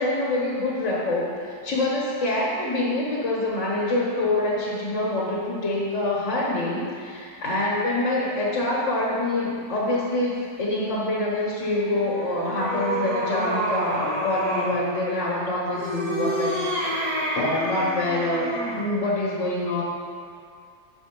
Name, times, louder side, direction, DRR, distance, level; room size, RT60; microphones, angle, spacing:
voice 1, 0.0-19.8, left 2 dB, 45° left, -6 dB, 1.3 m, -26 dB
sound 1, 11.8-14.8 15.7-18.9, right 1 dB, 60° right, 1.8 m, -28 dB
5.9 x 4.5 x 5.9 m, 2.3 s
omnidirectional pair, 2.0 m